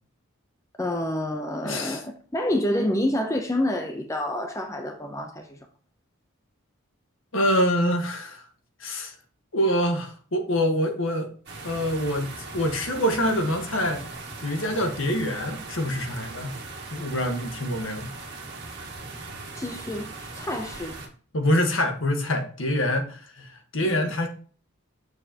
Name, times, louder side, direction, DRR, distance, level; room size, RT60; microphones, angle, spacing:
voice 1, 0.8-5.6 19.5-21.0 23.8-24.1, left 1 dB, 15° left, 0.6 m, -28 dB
voice 2, 1.6-2.0 7.3-8.4 8.8-9.1 9.5-11.3 11.6-14.0 14.4-16.5 16.9-18.1 21.3-24.3, equal, 65° left, 1.4 m, -25 dB
sound 1, 11.5-21.1, right 3 dB, 50° right, 1.9 m, -39 dB
7.4 x 6.5 x 2.9 m
head